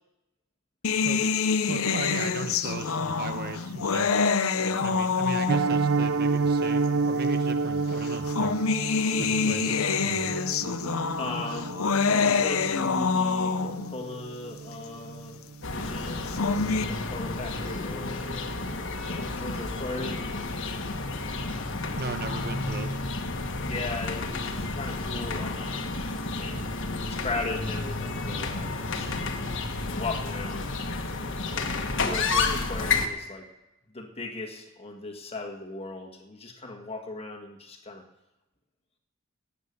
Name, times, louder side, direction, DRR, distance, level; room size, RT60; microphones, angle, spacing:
sound 1, 0.8-5.9 6.9-7.0 8.0-13.9 16.1-16.8, left 5 dB, 85° left, 0.7 m, -26 dB
voice 1, 1.0-1.4 1.7-4.1 4.8-8.5 9.2-10.3 22.0-23.0, right 3 dB, 50° right, 9 dB, 1.0 m, -37 dB
Piano, 5.5-16.4 16.6-16.9 17.2-17.3 17.7-17.9 18.2-18.3, right 4 dB, 65° right, 0.6 m, -30 dB
voice 2, 11.2-11.8 12.1-15.4 15.7-18.5 19.1-20.3 23.7-25.9 26.3-26.7 27.1-29.1 29.8-30.7 31.2-31.7 32.0-33.5 33.9-38.0, left 2 dB, 30° left, 2 dB, 1.7 m, -37 dB
sound 2, 15.6-33.1, left 3 dB, 60° left, 1.4 m, -31 dB
19.5 x 8.5 x 6.9 m, 0.97 s
head